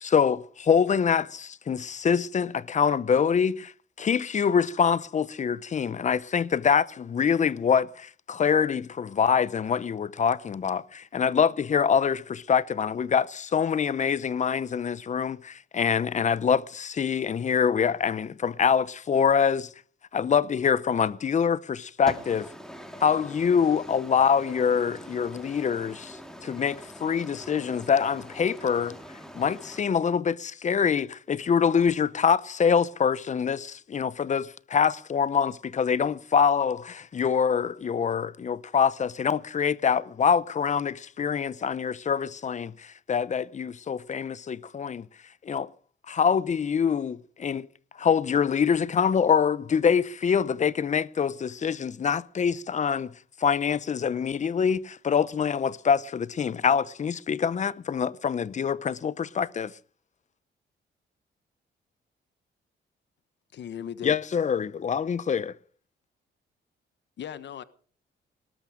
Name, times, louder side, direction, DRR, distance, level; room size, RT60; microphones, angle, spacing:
voice 1, 0.0-3.7 4.0-19.7 20.1-22.4 23.0-26.1 26.4-28.9 29.4-45.1 45.5-45.7 46.1-47.7 48.0-53.1 53.4-59.7 64.0-65.5, left 7 dB, 35° left, 0.7 m, -25 dB
voice 2, 22.1-29.8, equal, 5° left, 3.6 m, -43 dB
voice 3, 63.5-64.2 67.2-67.6, left 9 dB, 65° left, 1.3 m, -37 dB
19.5 x 12.5 x 5.1 m
cardioid pair, 120°, 20 cm